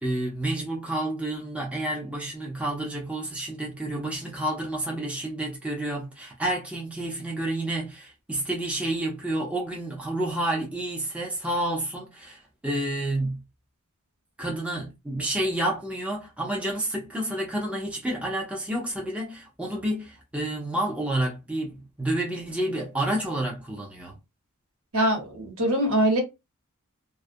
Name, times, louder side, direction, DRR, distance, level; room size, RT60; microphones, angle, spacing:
voice 1, 0.0-13.4 14.4-24.2, right 1 dB, 5° right, 0.5 m, -29 dB
voice 2, 24.9-26.2, right 1 dB, 70° right, 1.1 m, -23 dB
2.3 x 2.1 x 2.5 m
head